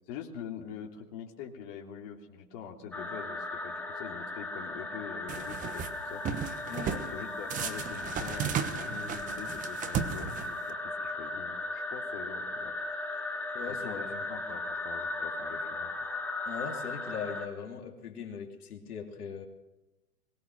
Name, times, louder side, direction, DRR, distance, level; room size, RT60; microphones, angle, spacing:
voice 1, 0.1-6.2 7.1-12.7 13.7-15.9, left 7 dB, 40° left, 0 dB, 3.0 m, -44 dB
sound 1, 2.9-17.5, left 2 dB, 5° left, 2.3 m, -37 dB
sound 2, 5.3-5.9 6.3-7.1 7.5-10.7, right 8 dB, 15° right, 1.2 m, -34 dB
voice 2, 6.7-7.1 13.5-14.2 16.5-19.5, left 6 dB, 65° left, 2 dB, 3.1 m, -40 dB
22.5 x 18.5 x 6.2 m, 1.0 s
hypercardioid pair, 135°, 47 cm